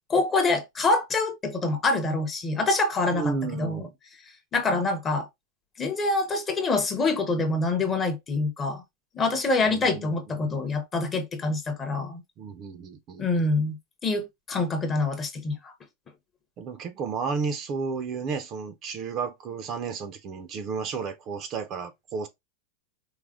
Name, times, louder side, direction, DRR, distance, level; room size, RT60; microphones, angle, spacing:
voice 1, 0.1-3.8 4.5-5.3 5.8-8.8 9.1-12.2 13.2-13.8 14.0-15.7, left 3 dB, 15° left, 0.7 m, -26 dB
voice 2, 3.1-3.9 9.6-10.1 10.4-10.6 12.4-13.5 16.6-22.3, right 5 dB, 25° right, 0.5 m, -32 dB
4.7 x 2.1 x 3.5 m
supercardioid pair, 175°, 0 cm